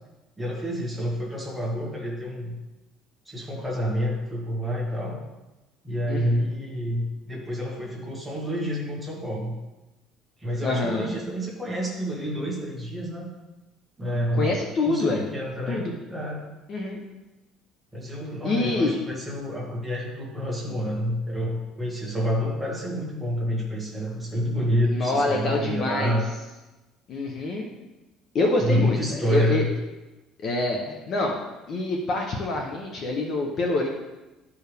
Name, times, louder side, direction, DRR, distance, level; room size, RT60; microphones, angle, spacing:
voice 1, 0.4-2.6 3.3-5.2 5.8-9.5 10.4-13.3 14.0-16.4 17.9-26.3 28.6-29.7, equal, 5° right, -5 dB, 1.7 m, -28 dB
voice 2, 6.1-6.4 10.6-11.1 14.3-15.3 15.7-15.9 16.7-17.0 18.4-19.0 24.9-26.2 27.1-27.7 28.3-29.6 30.4-31.4 31.7-33.9, left 2 dB, 35° left, 1 dB, 0.8 m, -26 dB
12.0 x 4.7 x 3.4 m, 1.1 s
cardioid pair, 170°, 0 cm